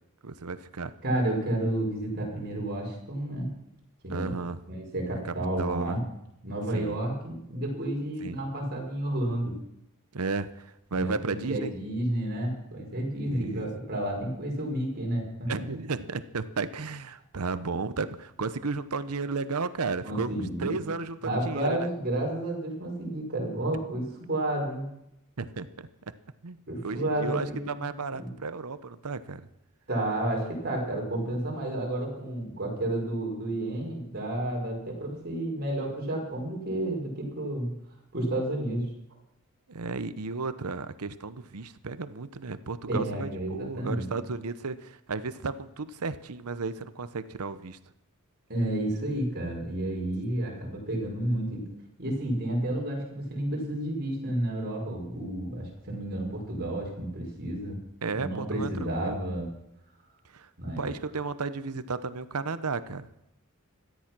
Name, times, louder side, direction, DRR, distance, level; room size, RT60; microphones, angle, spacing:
voice 1, 0.2-0.9 4.1-4.6 5.2-6.0 6.7-7.0 8.2-8.4 10.1-11.7 13.2-13.7 15.5-21.9 25.4-25.9 26.4-29.5 39.7-47.8 58.0-59.2 60.3-60.5 60.8-63.2, right 4 dB, 75° right, 13 dB, 0.9 m, -34 dB
voice 2, 1.0-3.5 4.0-4.3 4.7-6.0 6.4-9.6 10.9-15.6 20.0-20.8 21.2-24.9 26.7-28.3 29.9-37.7 38.1-38.9 42.9-44.2 48.5-51.7 52.0-57.8 58.1-59.5 60.6-60.9, right 1 dB, 45° right, -1 dB, 5.2 m, -31 dB
17.0 x 13.0 x 6.1 m, 0.82 s
head